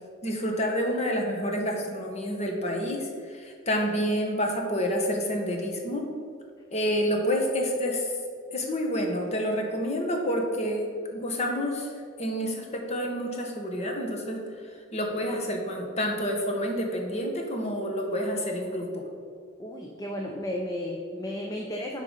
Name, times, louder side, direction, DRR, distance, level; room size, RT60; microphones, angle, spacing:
voice 1, 0.2-6.0 6.7-8.1 8.5-10.8 11.1-11.9 12.2-14.4 14.9-19.0, equal, 35° left, 1 dB, 1.2 m, -28 dB
voice 2, 19.6-22.0, left 1 dB, 20° left, 0 dB, 0.6 m, -33 dB
10.0 x 3.9 x 5.6 m, 2.2 s
head